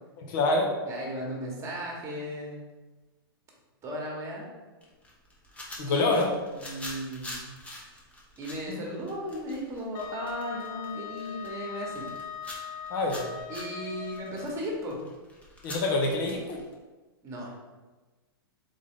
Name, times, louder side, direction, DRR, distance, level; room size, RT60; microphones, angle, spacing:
voice 1, 0.3-0.7 5.8-6.3 8.7-8.8 12.9-13.2 15.6-16.6, left 2 dB, 55° left, 1 dB, 1.1 m, -26 dB
voice 2, 0.9-2.6 3.8-4.4 5.9-6.2 6.5-7.4 8.4-12.1 13.5-15.0 17.2-17.5, equal, 25° right, -1 dB, 1.3 m, -36 dB
sound 1, 4.8-16.7, left 1 dB, 10° left, 0.9 m, -45 dB
Wind instrument woodwind instrument, 9.9-14.6, left 7 dB, 30° left, 0.4 m, -40 dB
3.7 x 3.6 x 3.7 m, 1.2 s
hypercardioid pair, 130°, 13 cm